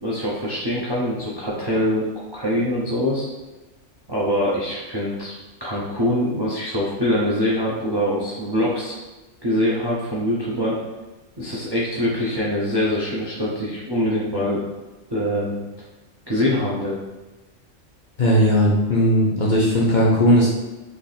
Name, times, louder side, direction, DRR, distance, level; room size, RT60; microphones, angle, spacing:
voice 1, 0.0-3.3 4.1-5.3 5.6-9.0 9.4-10.8 11.4-14.6 15.1-15.6 16.3-17.0, left 1 dB, 40° right, -6 dB, 0.3 m, -23 dB
voice 2, 18.2-20.5, equal, 50° left, -5 dB, 0.6 m, -17 dB
3.3 x 2.4 x 4.0 m, 1.1 s
omnidirectional pair, 1.4 m